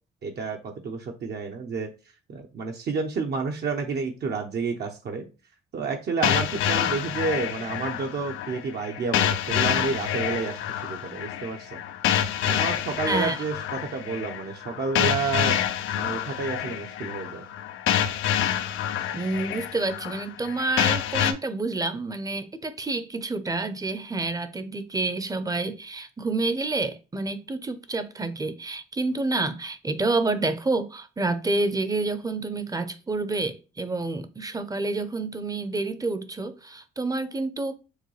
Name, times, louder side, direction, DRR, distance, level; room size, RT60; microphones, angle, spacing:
voice 1, 0.2-1.9 2.3-5.3 5.7-11.8 12.4-15.6 15.9-17.5, right 4 dB, 55° right, 0.8 m, -30 dB
sound 1, 6.2-21.3, left 10 dB, 85° left, 0.5 m, -27 dB
voice 2, 13.1-13.4 19.1-37.8, right 3 dB, 20° right, 0.7 m, -28 dB
6.5 x 2.3 x 3.2 m
cardioid pair, 90°, 20 cm